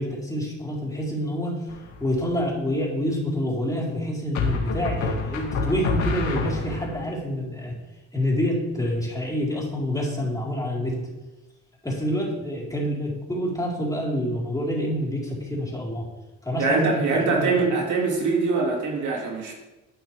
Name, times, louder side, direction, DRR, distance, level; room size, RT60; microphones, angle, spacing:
voice 1, 0.0-1.6 2.0-7.8 8.1-11.0 11.8-16.1 16.4-17.6, equal, 10° left, -5 dB, 4.1 m, -27 dB
sound 1, 1.7-2.2 4.4-7.0, left 4 dB, 75° left, 2.1 m, -27 dB
voice 2, 16.6-19.5, right 4 dB, 70° right, -1 dB, 2.5 m, -23 dB
12.0 x 9.4 x 3.4 m, 1.0 s
cardioid pair, 90°, 30 cm